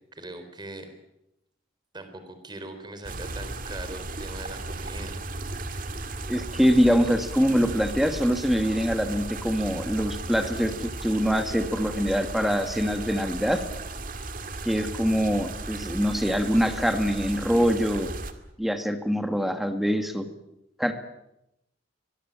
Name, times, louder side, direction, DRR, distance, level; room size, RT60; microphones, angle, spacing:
voice 1, 0.1-0.9 1.9-5.2, right 2 dB, 25° right, 8 dB, 4.0 m, -40 dB
sound 1, 3.0-18.3, right 2 dB, 45° right, 2.2 m, -36 dB
voice 2, 6.3-13.6 14.7-18.1 18.6-20.3 20.8-20.9, equal, ahead, 7 dB, 1.9 m, -24 dB
23.0 x 21.5 x 8.8 m, 0.86 s
head